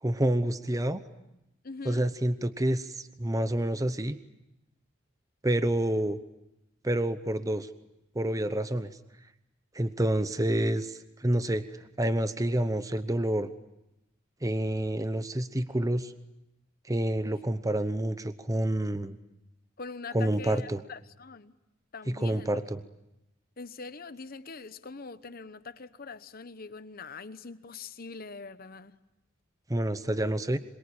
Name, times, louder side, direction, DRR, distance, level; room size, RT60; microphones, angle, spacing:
voice 1, 0.0-1.0 1.8-4.2 5.4-6.2 6.8-7.7 8.1-8.9 9.7-11.6 12.0-13.5 14.4-16.1 16.9-19.2 20.1-20.8 22.1-22.8 29.7-30.6, right 1 dB, 15° right, 0.9 m, -28 dB
voice 2, 1.6-2.0 19.8-21.5 21.9-22.5 23.6-29.0, left 4 dB, 50° left, 1.0 m, -43 dB
26.0 x 23.5 x 8.7 m
head